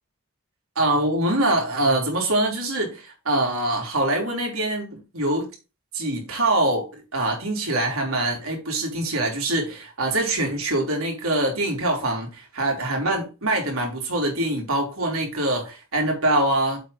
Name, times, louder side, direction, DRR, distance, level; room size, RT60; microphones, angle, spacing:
voice 1, 0.8-5.5 5.9-16.8, right 1 dB, 75° right, 3.5 m, -24 dB
7.6 x 4.3 x 5.1 m
head